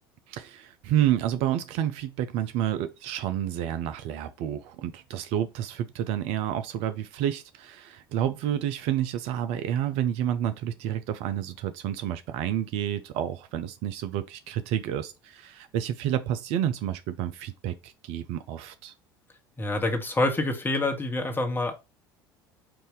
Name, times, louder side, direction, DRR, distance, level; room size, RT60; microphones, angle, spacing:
voice 1, 0.3-18.9, right 11 dB, 55° right, 0.5 m, -29 dB
voice 2, 19.6-21.7, left 2 dB, 15° left, 1.3 m, -26 dB
4.8 x 2.7 x 3.7 m
figure-of-eight pair, 70°, 12 cm